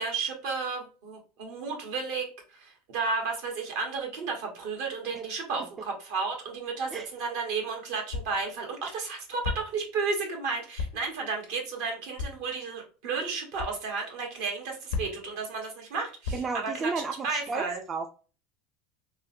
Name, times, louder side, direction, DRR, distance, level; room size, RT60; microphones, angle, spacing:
voice 1, 0.0-16.9 17.2-17.8, right 4 dB, 70° right, 1 dB, 1.2 m, -33 dB
sound 1, 7.0-7.1 8.1-8.5 9.4-9.9 10.8-11.1 12.2-12.5 13.6-13.8 14.9-15.3 16.2-16.7, left 4 dB, 85° left, 0.6 m, -35 dB
voice 2, 16.3-18.1, right 4 dB, 30° right, 6 dB, 0.3 m, -33 dB
3.6 x 2.1 x 2.6 m, 0.36 s
supercardioid pair, 105°, 0 cm